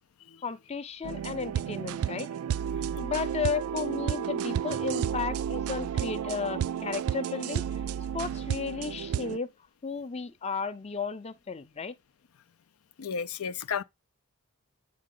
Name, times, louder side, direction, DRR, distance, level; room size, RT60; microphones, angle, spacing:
voice 1, 0.4-2.3 3.0-7.6 8.1-9.5 9.8-11.9, left 5 dB, 30° left, 0.5 m, -34 dB
sound 1, 1.0-9.4, right 8 dB, 85° right, 0.3 m, -32 dB
voice 2, 13.0-13.8, left 6 dB, 90° left, 0.5 m, -32 dB
8.5 x 3.8 x 3.7 m
head